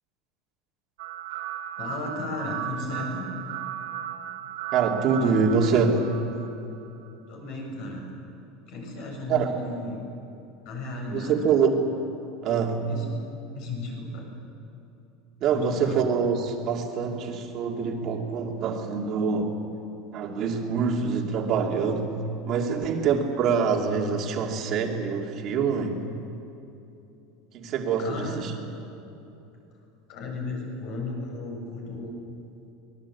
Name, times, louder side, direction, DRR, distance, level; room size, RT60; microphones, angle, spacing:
sound 1, 1.0-7.1, right 11 dB, 70° right, 1.1 m, -36 dB
voice 1, 1.8-3.3 7.3-8.0 8.7-10.0 10.6-11.5 12.9-13.2 13.5-14.2 15.5-16.0 28.0-28.4 30.1-32.1, left 2 dB, 45° left, 1 dB, 7.6 m, -34 dB
voice 2, 4.7-6.0 9.3-9.5 11.1-11.8 12.4-12.8 15.4-19.5 20.1-22.1 22.5-26.0 27.5-28.7, right 5 dB, 35° right, 1 dB, 2.7 m, -25 dB
25.0 x 21.5 x 8.5 m, 2.8 s
supercardioid pair, 170°, 0 cm